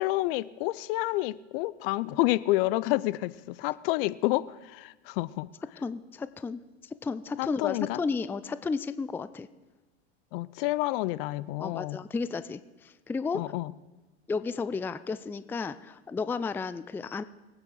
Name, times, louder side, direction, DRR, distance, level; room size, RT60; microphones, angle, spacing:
voice 1, 0.0-5.5 7.4-8.0 10.3-12.0 13.3-13.7, left 18 dB, 55° left, 19 dB, 0.6 m, -29 dB
voice 2, 5.8-6.6 7.0-9.5 11.6-13.5 14.3-17.2, left 4 dB, 5° left, 14 dB, 0.4 m, -33 dB
23.0 x 9.0 x 3.9 m, 1.2 s
hypercardioid pair, 95°, 33 cm